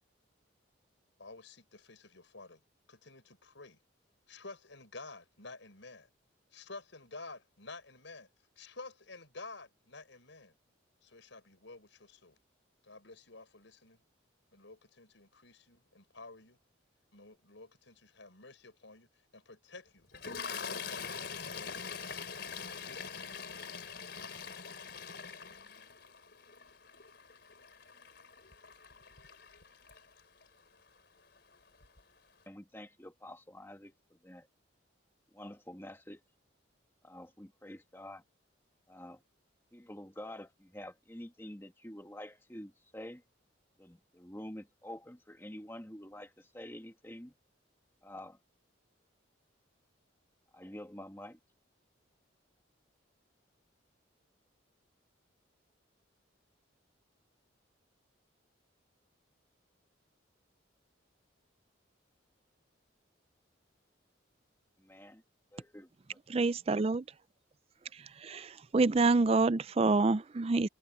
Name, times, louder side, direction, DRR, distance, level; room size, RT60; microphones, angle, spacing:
voice 1, 1.2-2.6 2.9-3.8 4.3-6.1 6.5-8.3 8.6-10.5 11.0-12.4 12.8-14.0 14.5-16.6 17.1-19.1 19.3-20.1 20.5-22.1 22.6-23.6 24.2-24.5, left 3 dB, 75° left, 5.1 m, -51 dB
Toilet flush, 20.1-30.4 31.4-31.6 31.8-32.0, left 6 dB, 55° left, 4.2 m, -44 dB
voice 2, 32.5-33.9 34.2-34.5 35.3-36.2 37.0-38.2 38.9-39.2 39.7-43.2 43.8-47.3 48.0-48.4 50.5-51.4 64.8-65.2 65.5-65.9, left 1 dB, 10° left, 1.7 m, -47 dB
voice 3, 66.3-67.0 68.3-68.5 68.7-70.7, right 3 dB, 30° right, 0.4 m, -27 dB
head